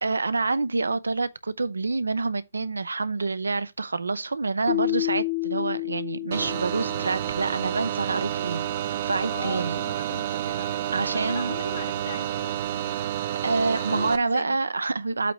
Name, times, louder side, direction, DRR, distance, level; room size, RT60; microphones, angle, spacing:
voice 1, 0.0-9.8 10.9-11.5 13.4-15.3, right 3 dB, 85° right, 0.6 m, -27 dB
Keyboard (musical), 4.7-7.5, left 25 dB, 35° left, 0.5 m, -30 dB
sound 1, 6.3-14.2, right 11 dB, 55° right, 0.7 m, -29 dB
voice 2, 9.3-12.6 13.7-14.7, left 5 dB, 75° left, 2.0 m, -39 dB
8.2 x 3.0 x 5.4 m
hypercardioid pair, 120°, 0 cm